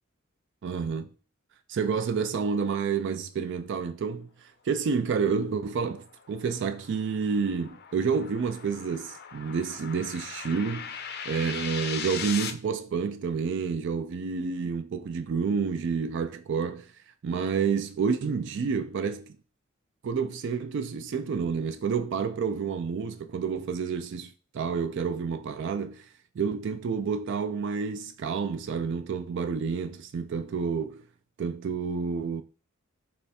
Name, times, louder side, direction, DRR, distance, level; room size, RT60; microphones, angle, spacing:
voice 1, 0.6-1.1 1.7-10.9 11.3-16.9 17.2-19.4 20.0-26.1 26.4-31.0 31.4-32.4, right 5 dB, 55° right, 0.3 m, -29 dB
sound 1, 5.6-12.5, left 7 dB, 50° left, 0.5 m, -39 dB
3.4 x 3.2 x 4.1 m
head